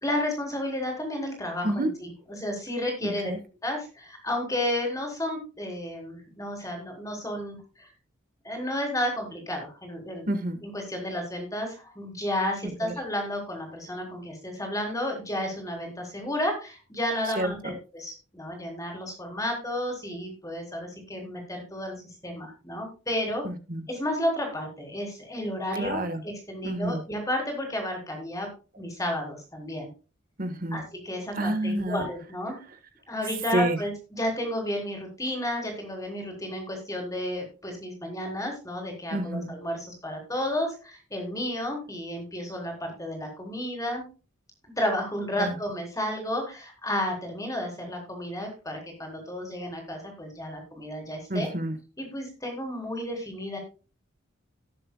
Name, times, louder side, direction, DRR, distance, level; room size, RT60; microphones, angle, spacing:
voice 1, 0.0-3.3 3.6-7.9 8.4-10.3 10.6-22.0 22.2-23.5 23.9-28.5 28.8-29.9 30.7-32.6 33.1-44.0 44.6-51.5 52.0-53.6, left 1 dB, 15° left, 2 dB, 4.0 m, -32 dB
voice 2, 3.0-3.4 10.3-10.6 12.8-12.9 17.4-17.7 23.4-23.8 25.8-26.2 26.6-27.0 30.4-30.8 31.4-32.0 33.5-33.8 39.1-39.5 45.4-45.6 51.3-51.7, right 1 dB, 45° right, 10 dB, 1.4 m, -28 dB
18.5 x 7.7 x 2.3 m, 0.33 s
head